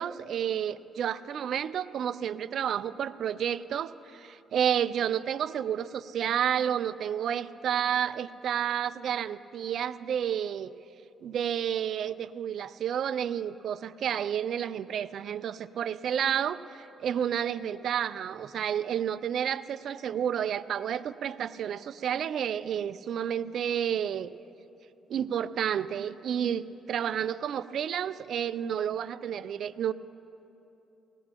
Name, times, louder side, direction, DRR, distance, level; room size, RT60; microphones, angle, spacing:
voice 1, 0.0-10.7 11.2-24.3 25.1-29.9, right 9 dB, 65° right, 14 dB, 0.4 m, -30 dB
20.0 x 17.5 x 3.0 m, 2.9 s
cardioid pair, 90°, 0 cm